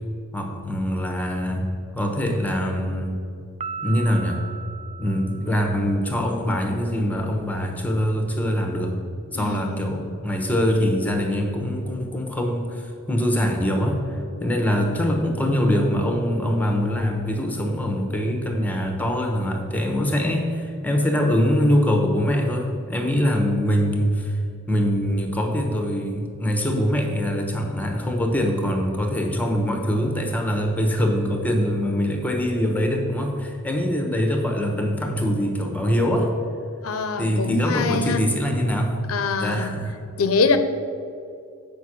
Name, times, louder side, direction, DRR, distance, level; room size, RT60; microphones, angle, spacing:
voice 1, 0.3-1.7 2.0-3.1 3.8-4.4 5.0-8.9 9.3-14.0 14.4-24.3 24.7-36.3 37.2-39.0 39.4-39.9, equal, 10° left, 2 dB, 1.0 m, -23 dB
Piano, 3.6-6.2, right 5 dB, 30° right, 0.3 m, -37 dB
voice 2, 9.3-10.2 36.8-38.2 39.1-39.7 40.2-40.6, left 4 dB, 80° left, 9 dB, 0.6 m, -24 dB
8.0 x 5.3 x 6.1 m, 2.5 s
head